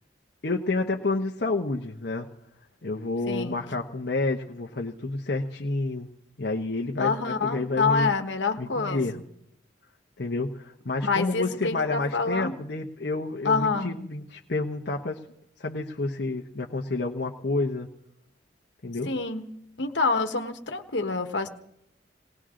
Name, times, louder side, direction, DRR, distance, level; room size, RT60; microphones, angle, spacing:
voice 1, 0.4-2.3 2.8-6.1 6.4-8.1 8.6-9.2 10.2-15.2 15.6-17.9 18.8-19.1, left 3 dB, 60° left, 0 dB, 1.0 m, -29 dB
voice 2, 3.3-3.6 7.0-9.2 11.0-12.6 13.4-14.0 19.0-19.5 19.8-21.5, left 4 dB, 80° left, 6 dB, 1.4 m, -27 dB
19.5 x 19.0 x 3.8 m, 0.75 s
head